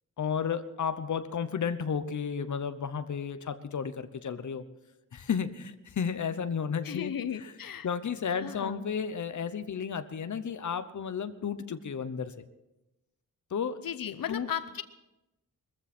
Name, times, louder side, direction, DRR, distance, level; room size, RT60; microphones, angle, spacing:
voice 1, 0.2-4.7 5.1-7.1 7.4-7.5 7.8-12.4 13.5-13.8 14.3-14.5, left 6 dB, 60° left, 11 dB, 0.9 m, -33 dB
voice 2, 6.8-7.9 8.3-8.8 13.8-14.8, left 9 dB, 85° left, 11 dB, 0.8 m, -36 dB
21.5 x 14.5 x 4.4 m, 0.97 s
wide cardioid pair, 130°, 34 cm